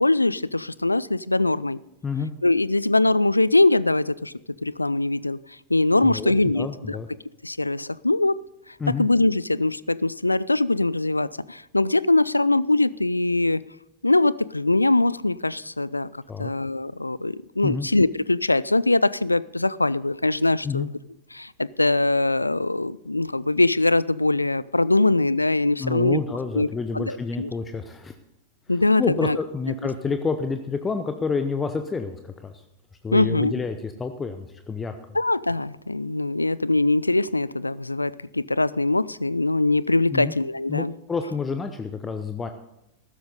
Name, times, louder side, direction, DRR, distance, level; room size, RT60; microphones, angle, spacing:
voice 1, 0.0-1.8 2.4-4.3 4.6-5.4 5.7-7.0 7.4-8.4 9.0-13.6 14.0-20.9 21.3-26.2 26.5-26.7 26.9-27.5 28.7-29.4 33.1-33.5 35.1-40.9, left 2 dB, 85° left, 21 dB, 0.4 m, -22 dB
voice 2, 2.0-2.3 6.0-7.1 8.8-9.1 16.3-16.5 17.6-17.9 20.6-20.9 25.8-28.1 28.7-32.6 33.0-34.9 40.1-40.4 40.7-42.5, left 4 dB, 15° left, 8 dB, 0.9 m, -29 dB
15.0 x 13.0 x 4.0 m, 0.90 s
figure-of-eight pair, 90°, 0 cm